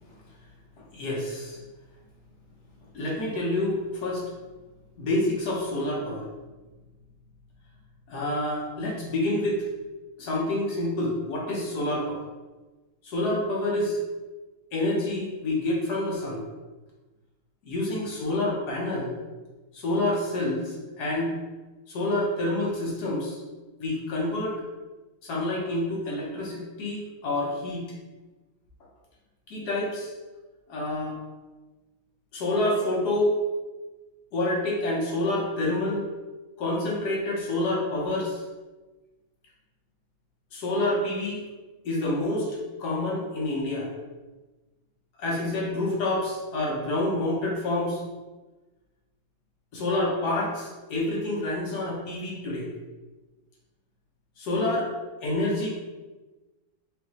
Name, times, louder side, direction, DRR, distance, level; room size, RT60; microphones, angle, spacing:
voice 1, 0.9-1.6 2.9-4.2 5.0-6.2 8.1-9.6 10.2-12.2 13.0-14.0 14.7-16.4 17.6-19.1 19.7-21.3 21.9-23.4 23.8-24.6 25.2-27.8 29.5-30.1 30.7-31.2 32.3-33.3 34.3-36.1 36.6-38.4 40.5-41.4 41.8-43.9 45.2-48.0 49.7-52.7 54.4-54.9 55.2-55.7, left 1 dB, 60° left, -4 dB, 1.3 m, -28 dB
5.2 x 2.6 x 3.0 m, 1.2 s
omnidirectional pair, 2.3 m